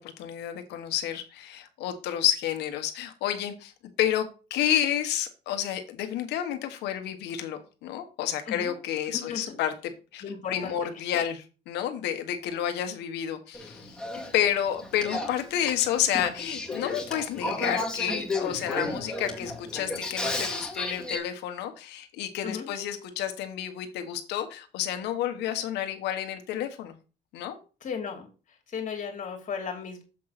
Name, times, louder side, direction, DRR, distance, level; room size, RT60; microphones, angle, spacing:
voice 1, 0.0-3.7 4.0-9.7 10.1-14.0 14.3-27.0 27.3-27.6, left 10 dB, 85° left, 7 dB, 1.4 m, -30 dB
voice 2, 10.2-10.8 22.4-22.7 27.8-28.3 28.7-30.0, left 6 dB, 50° left, 3 dB, 2.8 m, -35 dB
Male speech man speaking / Female speech woman speaking / Conversation, 13.5-21.2, left 2 dB, 5° left, 2.2 m, -33 dB
7.5 x 3.9 x 5.8 m, 0.34 s
cardioid pair, 110°, 17 cm